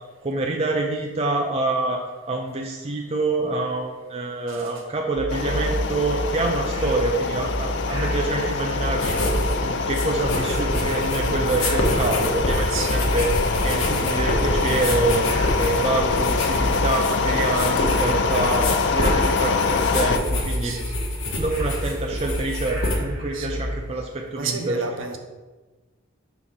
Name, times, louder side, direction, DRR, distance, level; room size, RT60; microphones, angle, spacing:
voice 1, 0.2-2.0 2.3-9.2 9.6-13.3 13.6-15.3 15.6-20.7 21.4-24.8, right 2 dB, 30° right, 1 dB, 0.4 m, -26 dB
sound 1, 5.1-23.8, equal, 85° right, 1.4 m, -30 dB
sound 2, 5.3-20.2, left 4 dB, 55° left, 0.4 m, -25 dB
sound 3, 8.9-9.6 9.8-23.0, left 1 dB, 75° left, 1.1 m, -28 dB
voice 2, 11.2-11.8 12.7-13.2 14.7-15.0 17.1-17.2 17.9-18.3 20.6-20.8 23.3-23.7 24.3-25.2, right 4 dB, 70° right, 4 dB, 0.8 m, -33 dB
4.8 x 4.1 x 5.5 m, 1.2 s
head